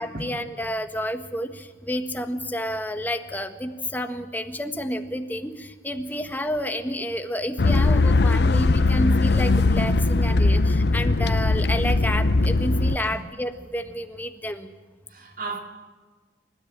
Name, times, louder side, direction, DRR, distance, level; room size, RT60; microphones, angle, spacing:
voice 1, 0.0-14.7, equal, 10° left, 1.5 m, -30 dB
sound 1, 7.6-13.0, left 3 dB, 70° left, 0.6 m, -20 dB
voice 2, 12.7-13.2 15.1-15.6, right 3 dB, 50° right, 2.7 m, -35 dB
28.0 x 14.0 x 8.8 m
head